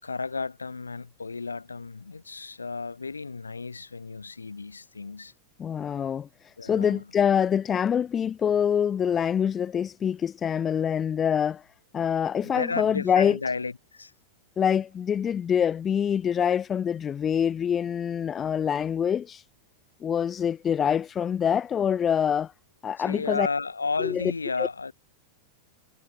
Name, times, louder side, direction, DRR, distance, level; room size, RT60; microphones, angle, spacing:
voice 1, 0.0-5.3 6.6-7.1 12.4-14.1 23.0-24.9, left 4 dB, 75° left, 6.3 m, -33 dB
voice 2, 5.6-6.3 6.6-11.6 11.9-13.4 14.6-19.4 20.0-22.5 22.8-23.5 24.0-24.3, left 8 dB, 25° left, 0.6 m, -25 dB
figure-of-eight pair, 90°, 0 cm